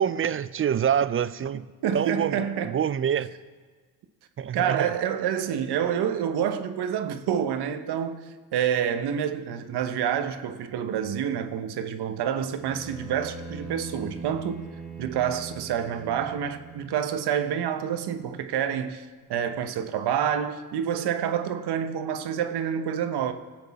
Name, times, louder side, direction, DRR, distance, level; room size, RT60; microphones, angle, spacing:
voice 1, 0.0-1.7 1.9-3.3 4.4-4.9, right 8 dB, 35° right, 0.4 m, -26 dB
voice 2, 1.8-2.8 4.5-14.7 15.0-23.3, right 8 dB, 75° right, 1.0 m, -28 dB
Bowed string instrument, 12.6-17.0, right 4 dB, ahead, 4.2 m, -41 dB
18.5 x 8.0 x 4.2 m
cardioid pair, 80°, 40 cm